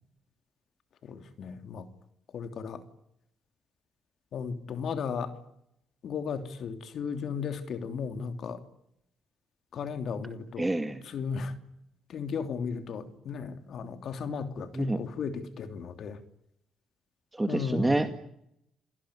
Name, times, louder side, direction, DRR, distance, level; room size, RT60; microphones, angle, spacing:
voice 1, 1.0-1.9 2.3-2.8 4.3-5.3 6.0-8.6 9.7-10.7 11.0-11.5 12.1-16.2 17.5-18.1, left 6 dB, 65° left, 3.1 m, -35 dB
voice 2, 10.6-11.0 14.7-15.0 17.3-18.1, right 2 dB, 15° right, 2.1 m, -27 dB
28.5 x 18.5 x 10.0 m
cardioid pair, 90°, 0 cm